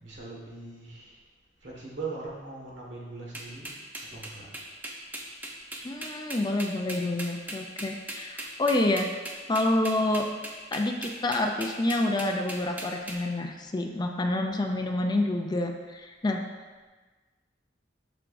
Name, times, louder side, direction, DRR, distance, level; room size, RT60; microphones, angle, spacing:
voice 1, 0.0-1.2 1.6-3.8 4.1-4.5, right 3 dB, 70° right, -3 dB, 1.7 m, -40 dB
sound 1, 3.3-13.2, right 1 dB, 10° right, 0.7 m, -38 dB
voice 2, 5.8-9.1 9.5-10.3 10.7-16.4, left 2 dB, 25° left, 3 dB, 0.4 m, -28 dB
7.7 x 5.9 x 2.6 m, 1.3 s
head